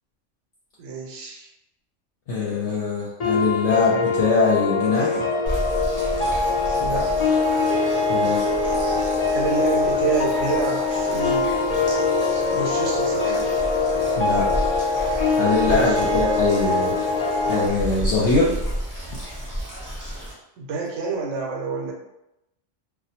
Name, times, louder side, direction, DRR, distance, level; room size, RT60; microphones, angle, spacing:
voice 1, 0.8-1.5 6.7-7.3 9.3-11.5 12.5-13.5 15.6-16.0 20.6-21.9, right 5 dB, 75° right, 0 dB, 0.9 m, -28 dB
voice 2, 2.3-5.2 8.1-8.5 14.2-14.5 15.0-16.9 17.5-18.5, left 4 dB, 70° left, -6 dB, 0.9 m, -22 dB
sound 1, 3.2-17.7, left 3 dB, 55° left, 0.4 m, -23 dB
sound 2, 5.5-20.3, equal, 25° right, 0.5 m, -33 dB
2.3 x 2.1 x 2.7 m, 0.89 s
omnidirectional pair, 1.3 m